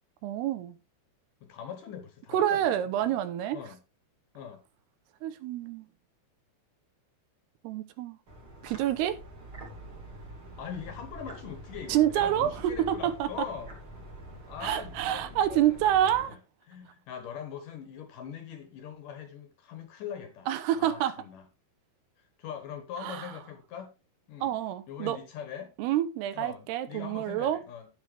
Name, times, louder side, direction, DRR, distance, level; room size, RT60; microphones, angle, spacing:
voice 1, 0.2-0.8 2.3-3.6 5.2-5.9 7.6-8.2 8.6-9.2 11.9-13.3 14.6-16.4 20.5-21.1 23.0-23.3 24.4-25.2 25.8-27.6, right 11 dB, 80° right, 2.7 m, -27 dB
voice 2, 1.4-3.2 3.5-3.8 4.3-4.6 10.6-13.8 14.5-15.8 16.3-16.4 16.7-20.5 20.7-21.4 22.2-23.9 24.3-24.6 24.9-25.7 26.3-27.9, left 8 dB, 65° left, 2.3 m, -42 dB
sound 1, 8.3-16.3, right 1 dB, 35° right, 2.9 m, -46 dB
9.8 x 9.6 x 3.3 m
omnidirectional pair, 4.8 m